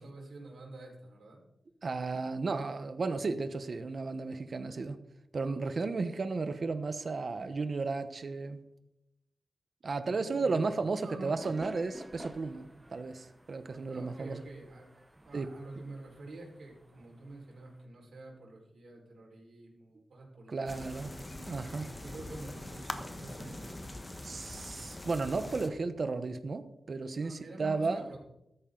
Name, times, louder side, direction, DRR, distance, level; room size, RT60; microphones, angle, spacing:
voice 1, 0.0-1.4 9.9-11.4 13.9-20.6 20.9-21.5 22.0-23.9 27.2-28.2, right 2 dB, 70° right, 4.8 m, -48 dB
voice 2, 1.8-5.0 5.3-8.6 9.8-14.4 15.3-15.5 20.5-21.2 21.5-21.9 24.2-28.0, right 3 dB, 45° right, 1.0 m, -34 dB
sound 1, 11.4-17.9, right 1 dB, 10° right, 0.9 m, -52 dB
sound 2, 20.7-25.7, left 1 dB, 15° left, 1.3 m, -43 dB
14.5 x 13.5 x 3.9 m
wide cardioid pair, 135°, 0 cm